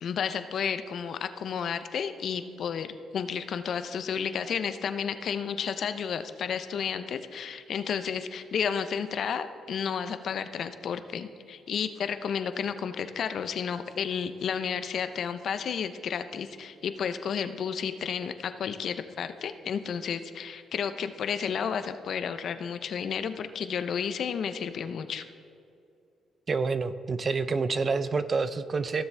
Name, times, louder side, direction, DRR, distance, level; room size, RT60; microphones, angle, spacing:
voice 1, 0.0-25.2, left 7 dB, 60° left, 10 dB, 0.6 m, -32 dB
voice 2, 26.5-29.0, right 4 dB, 40° right, 13 dB, 0.5 m, -28 dB
16.0 x 7.1 x 3.4 m, 2.5 s
cardioid pair, 90°, 0 cm